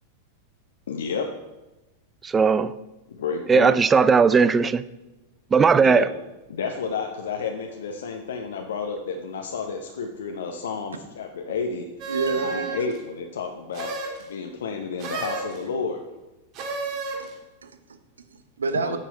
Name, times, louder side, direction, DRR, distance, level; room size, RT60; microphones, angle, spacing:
voice 1, 0.9-1.3 3.1-3.8 5.8-6.1 6.5-11.9 12.3-13.9 14.3-16.0 18.7-19.0, left 5 dB, 65° left, 4 dB, 0.7 m, -31 dB
voice 2, 2.2-2.7 3.5-4.8 5.5-6.1, right 5 dB, 20° right, 15 dB, 0.4 m, -17 dB
sound 1, 12.0-13.0 13.7-14.2 15.0-15.6 16.5-17.3, right 4 dB, 40° right, 1.9 m, -31 dB
voice 3, 12.1-12.8 16.9-17.3 17.6-19.0, right 4 dB, 70° right, 9 dB, 0.8 m, -30 dB
9.1 x 7.3 x 4.0 m, 1.0 s
figure-of-eight pair, 90°, 0 cm